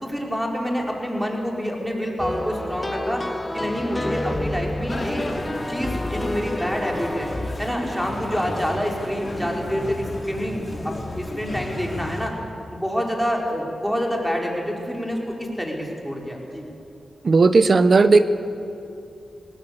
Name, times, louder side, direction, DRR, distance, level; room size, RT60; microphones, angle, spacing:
voice 1, 0.0-3.2 3.5-5.3 5.7-7.3 7.6-12.3 12.7-16.7, equal, ahead, 0 dB, 5.1 m, -27 dB
sound 1, 2.2-7.6, left 1 dB, 20° left, 1.4 m, -29 dB
sound 2, 4.9-12.3, left 1 dB, 35° left, 3.4 m, -33 dB
voice 2, 17.2-18.2, right 3 dB, 55° right, 12 dB, 1.1 m, -15 dB
20.0 x 18.5 x 8.2 m, 2.7 s
cardioid pair, 45°, 0 cm